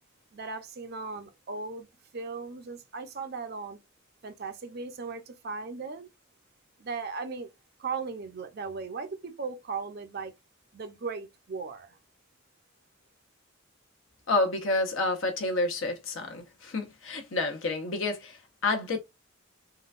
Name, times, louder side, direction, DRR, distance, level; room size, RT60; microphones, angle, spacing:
voice 1, 0.3-1.9 2.1-3.8 4.2-6.1 6.8-7.5 7.8-10.3 10.7-12.0, right 4 dB, 50° right, 0.6 m, -37 dB
voice 2, 14.3-19.0, left 2 dB, 70° left, 0.7 m, -29 dB
3.8 x 2.2 x 2.4 m
head